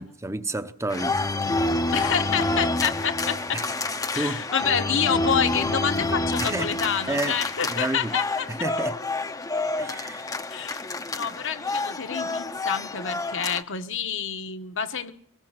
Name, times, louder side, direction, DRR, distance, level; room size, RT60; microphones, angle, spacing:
voice 1, 0.0-1.4 3.5-3.7 4.1-4.4 6.4-6.8 7.1-7.4 7.7-8.2 8.5-9.0 9.8-10.4, right 2 dB, 15° right, 0.9 m, -30 dB
sound 1, 0.9-13.6, left 2 dB, 15° left, 0.8 m, -28 dB
voice 2, 1.9-3.6 4.1-8.5 10.5-10.8 11.1-15.1, left 7 dB, 60° left, 1.4 m, -28 dB
24.0 x 20.5 x 6.0 m
head